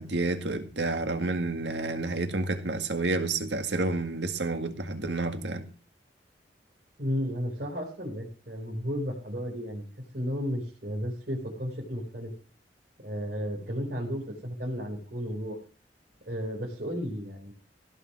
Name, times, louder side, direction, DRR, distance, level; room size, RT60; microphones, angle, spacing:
voice 1, 0.0-5.7, right 2 dB, 75° right, 2.0 m, -30 dB
voice 2, 7.0-9.8 10.1-12.3 13.0-15.6 16.2-17.5, equal, 55° right, 4.3 m, -33 dB
16.0 x 6.5 x 6.2 m
head